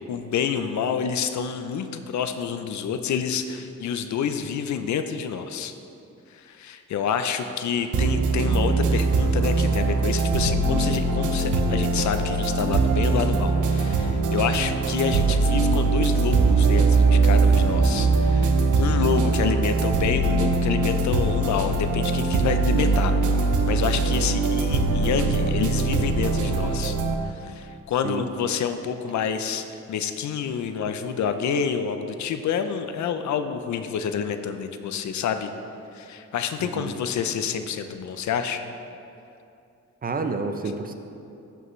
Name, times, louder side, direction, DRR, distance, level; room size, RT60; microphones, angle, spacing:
voice 1, 0.1-5.7 6.3-27.0 27.2-35.5 35.9-38.6, left 7 dB, 70° left, 8 dB, 0.6 m, -28 dB
sound 1, 7.9-27.1, right 3 dB, 85° right, 0.8 m, -21 dB
voice 2, 40.0-40.9, right 4 dB, 30° right, 6 dB, 0.5 m, -29 dB
13.5 x 5.6 x 3.2 m, 2.7 s
cardioid pair, 120°, 30 cm